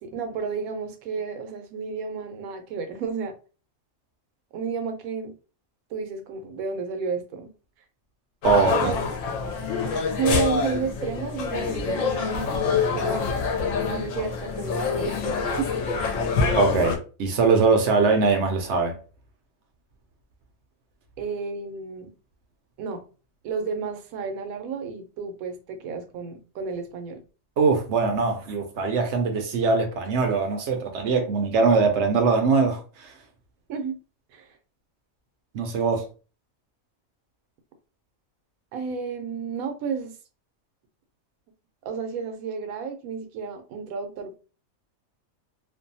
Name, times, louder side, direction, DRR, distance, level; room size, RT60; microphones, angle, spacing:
voice 1, 0.0-3.3 4.5-5.3 5.9-7.5 8.7-9.0 10.1-13.2 13.9-15.7 21.2-22.1 22.8-23.0 23.4-27.2 33.7-34.0 34.3-34.6 38.7-40.2 41.8-44.4, right 5 dB, 85° right, 1.0 m, -32 dB
sound 1, 8.4-17.0, left 5 dB, 75° left, 0.9 m, -26 dB
voice 2, 8.4-8.9 16.6-18.9 27.6-33.1 35.5-36.1, right 4 dB, 65° right, 0.8 m, -22 dB
2.6 x 2.2 x 2.6 m
omnidirectional pair, 1.4 m